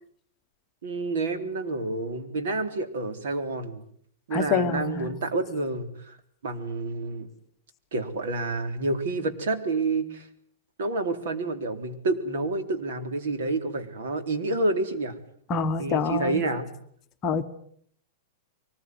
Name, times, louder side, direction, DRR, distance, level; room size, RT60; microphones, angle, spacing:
voice 1, 0.8-3.8 4.3-6.2 6.4-7.3 7.9-10.3 10.8-15.1 15.8-16.7, right 2 dB, 70° right, 8 dB, 4.0 m, -29 dB
voice 2, 4.3-5.1 15.5-16.4 17.2-17.4, left 5 dB, 20° left, 6 dB, 1.3 m, -26 dB
24.0 x 20.5 x 9.8 m, 0.64 s
supercardioid pair, 175°, 0 cm